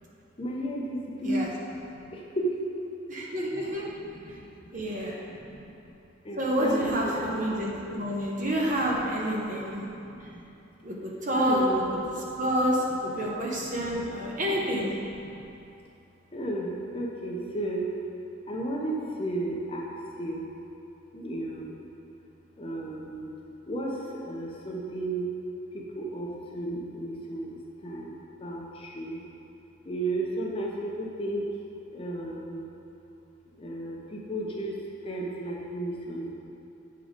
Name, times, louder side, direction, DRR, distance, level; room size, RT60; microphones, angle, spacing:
voice 1, 0.4-1.5 1.8-2.5 3.6-4.5 4.7-5.7 6.2-8.3 8.6-10.4 11.3-12.4 13.1-13.2 13.5-15.7 16.3-17.9 18.5-19.9 20.2-20.4 21.1-21.8 22.6-23.3 23.7-25.3 25.7-26.3 26.5-29.2 29.8-31.5 31.9-32.7 33.6-34.8 35.0-36.3, right 1 dB, 30° left, -2 dB, 0.7 m, -34 dB
voice 2, 3.1-3.9 4.7-5.2 6.4-9.8 10.8-11.8 12.4-14.9, equal, 40° right, -3 dB, 1.0 m, -28 dB
8.0 x 3.8 x 5.0 m, 2.8 s
head